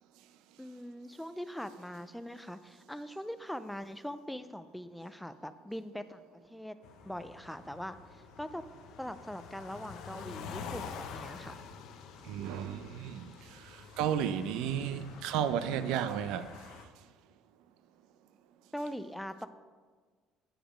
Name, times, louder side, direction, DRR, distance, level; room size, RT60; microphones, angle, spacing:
voice 1, 0.6-6.8 7.1-8.6 9.0-11.6 18.7-19.5, equal, 5° left, 0.3 m, -42 dB
sound 1, 6.8-16.9, left 6 dB, 70° left, 0.7 m, -47 dB
voice 2, 12.2-16.6, right 9 dB, 80° right, 0.4 m, -33 dB
9.0 x 5.0 x 5.0 m
cardioid pair, 115°, 0 cm